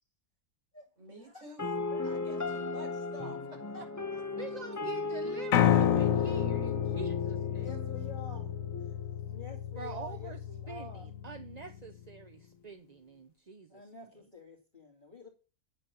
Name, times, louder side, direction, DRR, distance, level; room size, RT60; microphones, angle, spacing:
voice 1, 1.0-1.7 2.0-4.2, right 1 dB, 55° right, 6.0 m, -50 dB
sound 1, 1.6-9.6, left 3 dB, 15° left, 0.7 m, -37 dB
voice 2, 4.4-7.7 9.8-10.4 10.7-13.9, right 5 dB, 35° right, 0.7 m, -45 dB
Piano, 5.5-11.7, left 10 dB, 75° left, 1.2 m, -30 dB
voice 3, 5.7-6.1 7.6-8.9 9.2-11.1 13.7-15.3, left 3 dB, 35° left, 2.6 m, -49 dB
10.0 x 7.9 x 5.8 m
omnidirectional pair, 1.5 m